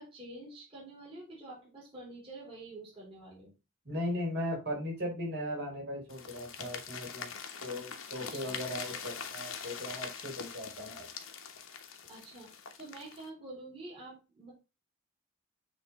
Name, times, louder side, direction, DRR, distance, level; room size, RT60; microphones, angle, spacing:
voice 1, 0.0-3.5 8.2-8.6 12.1-14.5, right 2 dB, 25° right, -5 dB, 3.0 m, -48 dB
voice 2, 3.8-7.3 7.6-11.0, left 1 dB, 50° right, -1 dB, 3.4 m, -37 dB
sound 1, 6.1-13.3, left 6 dB, 75° left, 1.1 m, -43 dB
7.7 x 3.6 x 4.2 m, 0.29 s
head